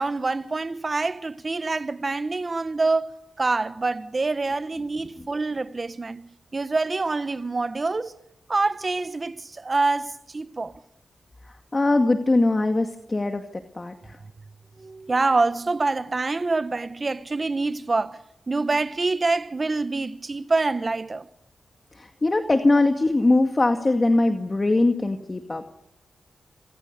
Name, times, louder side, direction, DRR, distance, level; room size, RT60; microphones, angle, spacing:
voice 1, 0.0-8.2 8.5-10.7 14.8-18.2 18.5-21.3, right 3 dB, 35° right, 1.4 m, -26 dB
voice 2, 11.7-14.2 21.9-25.6, left 2 dB, 30° left, 2.1 m, -21 dB
29.0 x 26.5 x 6.8 m
cardioid pair, 75°, 0 cm